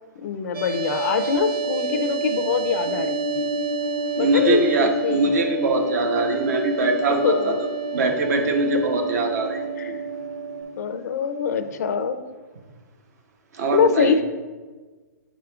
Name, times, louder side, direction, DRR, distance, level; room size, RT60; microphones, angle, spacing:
voice 1, 0.2-3.5 4.2-5.3 7.1-7.7 9.8-9.9 10.8-12.2 13.7-14.2, left 6 dB, 65° left, 9 dB, 0.4 m, -24 dB
sound 1, 0.5-10.6, right 7 dB, 25° right, 0.7 m, -30 dB
sound 2, 1.3-12.2, left 1 dB, 80° right, 1.2 m, -34 dB
voice 2, 4.2-7.7 7.9-9.9 13.5-14.2, right 2 dB, 60° right, 4 dB, 1.0 m, -22 dB
8.9 x 4.9 x 2.4 m, 1.4 s
hypercardioid pair, 155°, 10 cm